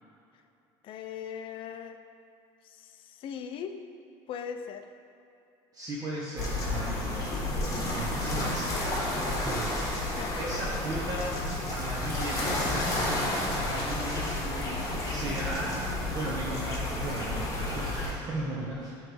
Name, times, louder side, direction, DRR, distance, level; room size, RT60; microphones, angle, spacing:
voice 1, 0.8-2.0 2.6-3.8 4.3-4.9 10.2-10.6, left 7 dB, 50° left, 7 dB, 0.4 m, -39 dB
voice 2, 5.7-7.7 7.9-11.3 11.7-14.4 15.0-18.9, right 1 dB, 35° right, -5 dB, 0.9 m, -36 dB
sound 1, 6.4-18.1, left 1 dB, 30° left, 1.4 m, -31 dB
8.9 x 3.2 x 3.4 m, 2.7 s
cardioid pair, 115°, 11 cm